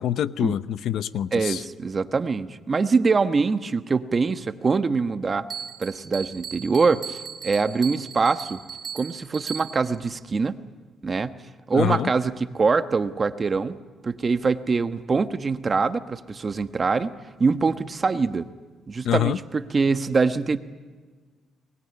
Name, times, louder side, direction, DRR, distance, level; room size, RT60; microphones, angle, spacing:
voice 1, 0.0-1.6 11.7-12.1 19.0-19.4, left 11 dB, 75° left, 15 dB, 0.7 m, -25 dB
voice 2, 1.3-5.4 5.8-7.2 7.4-8.6 8.9-10.6 11.0-11.3 11.7-13.8 14.0-17.1 17.4-18.5 18.9-20.6, right 4 dB, 35° right, 10 dB, 1.2 m, -23 dB
Bell, 5.5-10.0, right 7 dB, 50° right, 3.5 m, -37 dB
23.5 x 20.5 x 9.8 m, 1.5 s
cardioid pair, 90°, 0 cm